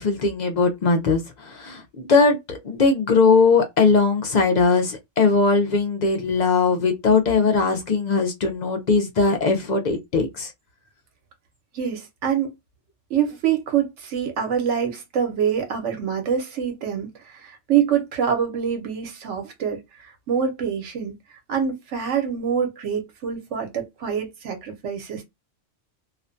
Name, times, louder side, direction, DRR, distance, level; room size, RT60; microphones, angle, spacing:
voice 1, 0.0-10.5, left 4 dB, 55° left, 0.5 m, -20 dB
voice 2, 11.7-12.5 13.1-21.1 21.5-25.3, right 8 dB, 75° right, 1.0 m, -25 dB
2.4 x 2.1 x 2.4 m
omnidirectional pair, 1.3 m